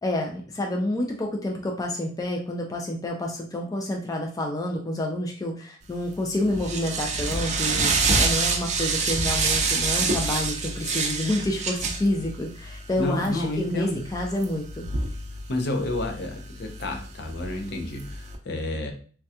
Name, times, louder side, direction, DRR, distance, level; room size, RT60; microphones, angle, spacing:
voice 1, 0.0-14.9, left 1 dB, 20° left, 1 dB, 0.4 m, -28 dB
sound 1, 5.9-18.4, right 3 dB, 40° right, 0.5 m, -28 dB
voice 2, 13.0-14.0 15.5-18.9, left 2 dB, 60° left, 3 dB, 0.6 m, -30 dB
3.4 x 2.2 x 2.7 m, 0.42 s
head